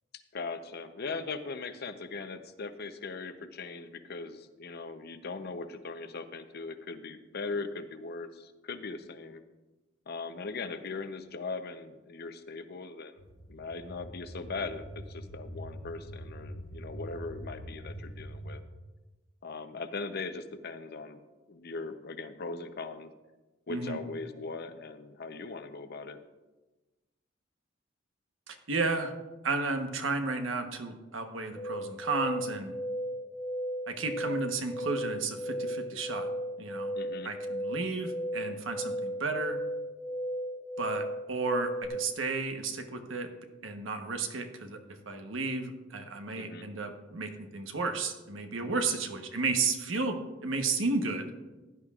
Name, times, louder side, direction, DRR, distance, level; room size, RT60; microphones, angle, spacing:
voice 1, 0.1-9.4 10.1-13.2 13.5-18.6 19.4-21.2 21.5-23.1 23.7-26.2 36.9-37.3 46.4-46.7, left 4 dB, 55° left, 9 dB, 0.7 m, -39 dB
sound 1, 13.2-18.6, equal, 85° left, 1.6 m, -44 dB
voice 2, 28.5-29.1 29.4-32.8 33.9-36.3 36.6-36.9 37.2-39.6 40.8-43.3 43.6-44.8 45.1-51.3, right 3 dB, 90° right, 6 dB, 1.1 m, -33 dB
sound 2, 31.6-41.9, equal, 15° left, 0.5 m, -36 dB
15.5 x 10.5 x 2.4 m, 1.2 s
head